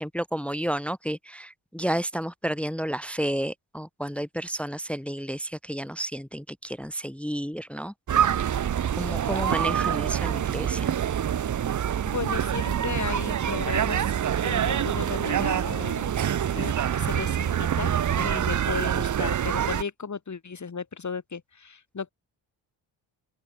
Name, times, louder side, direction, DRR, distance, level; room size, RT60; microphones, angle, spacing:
voice 1, 0.0-7.9 8.9-11.0, equal, 5° left, 1.2 m, -31 dB
sound 1, 8.1-19.8, right 9 dB, 40° right, 0.8 m, -26 dB
voice 2, 12.1-16.2 16.5-22.1, left 5 dB, 35° left, 4.0 m, -35 dB
open air
supercardioid pair, 65°, 47 cm